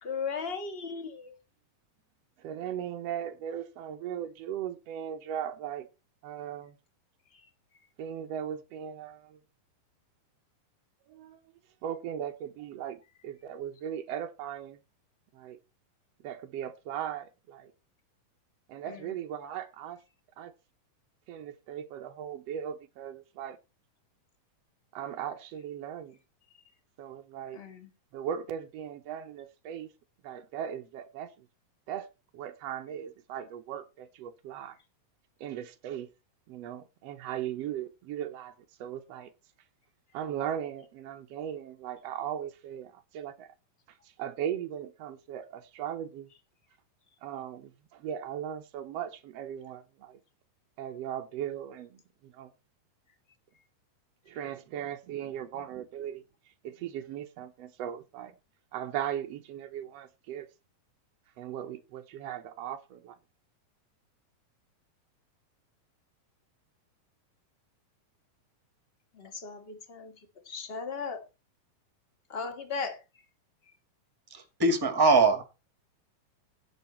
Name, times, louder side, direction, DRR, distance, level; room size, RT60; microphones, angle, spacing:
voice 1, 0.0-1.4 18.9-19.0 27.5-27.9 69.1-70.1 70.4-71.2 72.3-73.0, left 5 dB, 25° left, 1.3 m, -36 dB
voice 2, 2.4-5.9 6.2-6.8 8.0-9.4 11.1-11.4 11.8-14.8 15.3-15.6 16.2-17.7 18.7-20.0 20.4-20.5 21.3-23.6 24.9-26.2 27.0-27.6 28.1-29.9 30.2-31.5 31.9-34.8 35.4-36.1 36.5-39.3 40.1-43.5 43.9-46.3 47.2-50.2 50.8-52.5 54.3-56.2 56.6-58.3 58.7-60.5 61.4-63.2, right 9 dB, 75° right, 1.4 m, -38 dB
voice 3, 74.3-75.4, right 3 dB, 10° right, 1.5 m, -22 dB
16.5 x 6.4 x 4.3 m
omnidirectional pair, 4.0 m